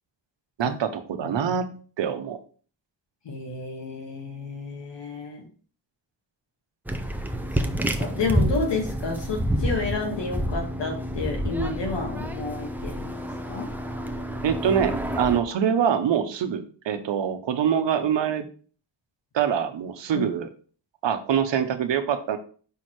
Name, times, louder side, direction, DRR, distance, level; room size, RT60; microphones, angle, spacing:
voice 1, 0.6-2.4 14.4-18.5 19.3-20.5 21.0-22.4, right 8 dB, 90° right, 8 dB, 0.9 m, -25 dB
voice 2, 3.3-5.5 7.5-13.2 13.5-13.7 20.1-20.3, left 3 dB, 80° left, 2 dB, 1.9 m, -31 dB
sound 1, 6.9-15.4, equal, 5° right, 0.5 m, -28 dB
5.6 x 4.4 x 4.7 m, 0.41 s
wide cardioid pair, 165°, 42 cm